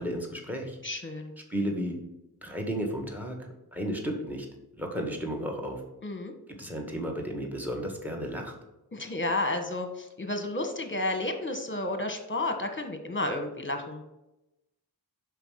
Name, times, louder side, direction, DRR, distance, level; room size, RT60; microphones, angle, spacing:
voice 1, 0.0-0.8 1.5-2.0 2.4-3.4 3.7-4.5 4.8-5.8 6.5-8.5, equal, 5° right, 2 dB, 1.8 m, -33 dB
voice 2, 0.8-1.3 6.0-6.3 8.9-14.1, left 2 dB, 30° left, 6 dB, 1.4 m, -31 dB
5.7 x 4.8 x 5.8 m, 0.92 s
cardioid pair, 50°, 39 cm